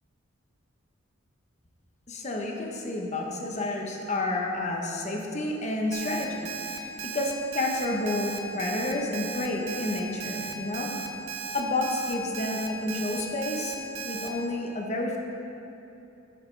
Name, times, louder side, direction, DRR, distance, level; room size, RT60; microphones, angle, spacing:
voice 1, 2.1-10.9 11.5-13.8 14.0-15.2, left 2 dB, 35° left, 0 dB, 0.9 m, -30 dB
Alarm, 5.9-14.3, right 6 dB, 85° right, 0.8 m, -36 dB
10.5 x 7.8 x 3.3 m, 2.8 s
head